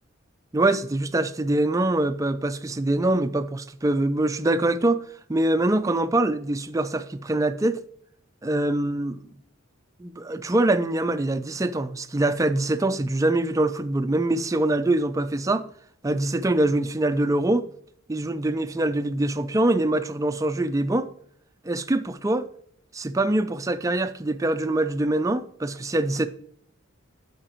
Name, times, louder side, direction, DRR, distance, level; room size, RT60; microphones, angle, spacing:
voice 1, 0.5-5.0 5.3-7.8 8.4-9.2 10.0-15.7 16.0-17.7 18.1-21.1 21.6-22.4 22.9-26.3, right 1 dB, 15° right, 0.4 m, -24 dB
12.5 x 5.0 x 3.0 m
head